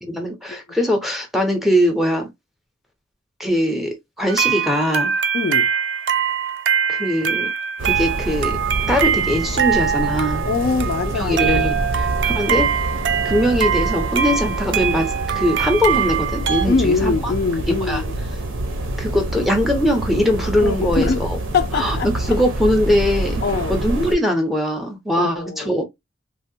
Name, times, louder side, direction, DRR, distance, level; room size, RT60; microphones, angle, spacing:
voice 1, 0.0-2.3 3.4-5.1 6.9-7.5 7.8-8.6 8.9-10.4 11.1-12.7 13.2-17.3 17.7-18.0 19.0-21.4 21.7-23.4 23.7-25.8, equal, ahead, 0.6 m, -21 dB
sound 1, 4.3-16.7, right 8 dB, 65° right, 0.4 m, -23 dB
voice 2, 5.3-5.7 10.5-11.7 16.7-18.1 20.6-22.1 23.4-23.7 25.1-25.8, left 4 dB, 50° left, 0.3 m, -23 dB
sound 2, 7.8-24.1, right 1 dB, 90° right, 0.8 m, -26 dB
3.3 x 2.1 x 2.7 m
head